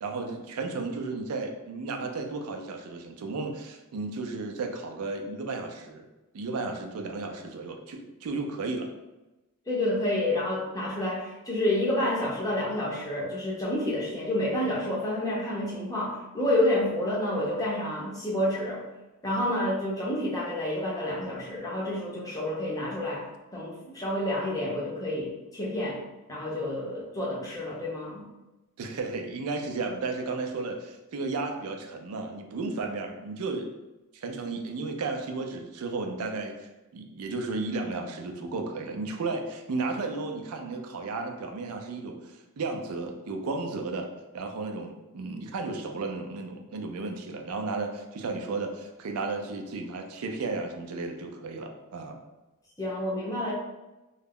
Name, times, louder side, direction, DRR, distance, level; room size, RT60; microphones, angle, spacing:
voice 1, 0.0-6.1 6.3-8.9 28.8-33.7 34.1-44.1 44.3-52.2, right 3 dB, 90° right, 4 dB, 0.4 m, -34 dB
voice 2, 9.7-18.8 19.2-23.2 23.5-26.0 26.3-28.2 52.8-53.5, left 1 dB, 15° left, -5 dB, 0.6 m, -29 dB
2.3 x 2.0 x 3.4 m, 1.0 s
head